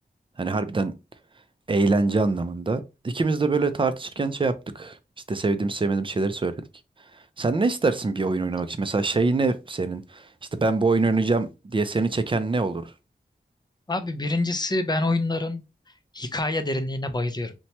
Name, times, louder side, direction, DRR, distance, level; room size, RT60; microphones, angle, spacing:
voice 1, 0.4-1.0 1.7-5.0 5.3-6.5 7.4-12.9, right 3 dB, 30° right, 0.4 m, -24 dB
voice 2, 13.9-15.6 16.1-17.5, left 2 dB, 25° left, 0.5 m, -26 dB
2.9 x 2.2 x 2.8 m
wide cardioid pair, 75°, 18 cm